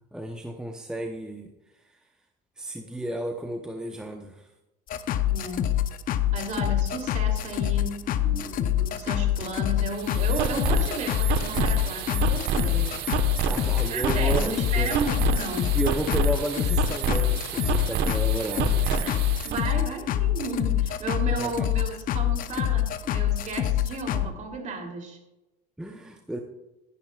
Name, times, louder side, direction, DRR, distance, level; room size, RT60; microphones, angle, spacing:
voice 1, 0.0-1.8 2.6-4.5 13.4-14.9 15.7-19.2 21.4-21.7 25.8-26.4, right 1 dB, 5° right, 3 dB, 0.9 m, -33 dB
sound 1, 4.9-24.3, left 11 dB, 45° left, 0.8 m, -26 dB
voice 2, 5.3-5.7 6.3-12.9 13.9-15.7 19.0-19.2 19.4-25.2, right 3 dB, 40° right, 2 dB, 3.1 m, -34 dB
sound 2, 9.9-19.6, right 6 dB, 60° right, 1.3 m, -29 dB
16.5 x 11.0 x 2.4 m, 1.0 s
supercardioid pair, 115°, 19 cm